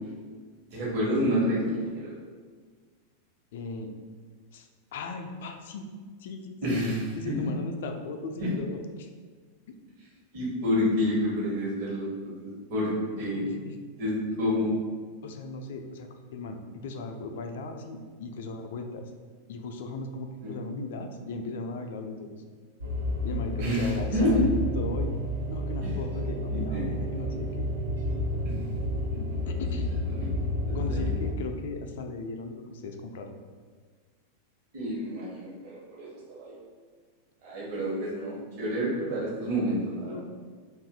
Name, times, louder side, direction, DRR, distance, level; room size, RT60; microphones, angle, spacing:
voice 1, 0.7-2.1 6.6-7.1 8.4-8.5 10.3-12.1 12.4-13.4 14.0-14.8 20.4-20.5 23.6-24.5 25.8-25.9 26.7-26.8 28.4-28.5 30.1-30.3 30.7-31.2 34.7-36.5 37.4-40.2, equal, 45° right, -7 dB, 1.0 m, -28 dB
voice 2, 3.5-3.9 4.5-5.9 6.2-6.8 7.2-9.1 9.7-9.8 13.2-13.8 14.3-14.4 15.2-19.0 19.5-22.3 23.2-25.2 25.5-27.7 29.5-30.0 30.7-33.3 40.1-40.2, left 3 dB, 55° left, 5 dB, 0.3 m, -37 dB
sound 1, 22.8-31.3, left 1 dB, 70° right, 0.5 m, -30 dB
2.6 x 2.4 x 3.6 m, 1.5 s
figure-of-eight pair, 90°, 0 cm